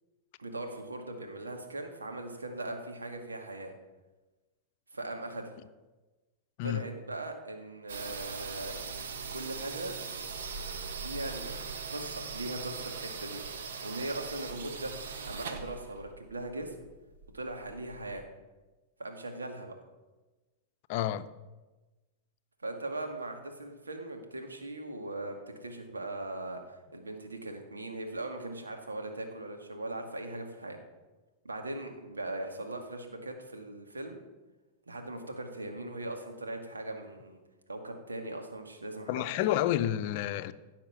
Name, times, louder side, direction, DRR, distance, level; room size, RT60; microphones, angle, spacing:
voice 1, 0.4-3.7 4.9-5.6 6.6-8.7 9.3-9.9 11.0-13.4 13.8-16.9 17.3-18.2 19.0-19.7 22.6-30.8 31.4-34.2 34.9-37.4 37.7-39.4, right 2 dB, 90° right, 2.0 m, -39 dB
sound 1, 7.9-18.2, right 5 dB, 70° right, 1.4 m, -40 dB
voice 2, 20.9-21.3 39.1-40.5, left 12 dB, 50° left, 0.6 m, -29 dB
15.5 x 5.9 x 7.3 m
hypercardioid pair, 100°, 0 cm